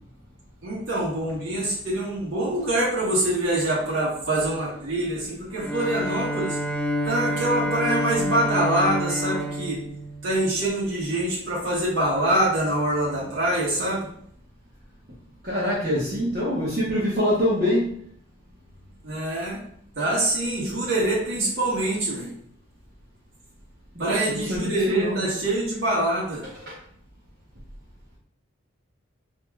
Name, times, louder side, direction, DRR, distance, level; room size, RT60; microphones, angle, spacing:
voice 1, 0.6-6.6 7.0-9.8 10.2-14.1 19.0-19.6 19.9-22.3 24.0-26.4, right 1 dB, 80° right, -7 dB, 1.4 m, -25 dB
Bowed string instrument, 5.5-10.8, equal, 5° left, 0.3 m, -28 dB
voice 2, 15.4-17.9 23.9-25.3 26.7-26.8, equal, 45° right, -9 dB, 1.0 m, -25 dB
4.6 x 2.8 x 2.3 m, 0.64 s
head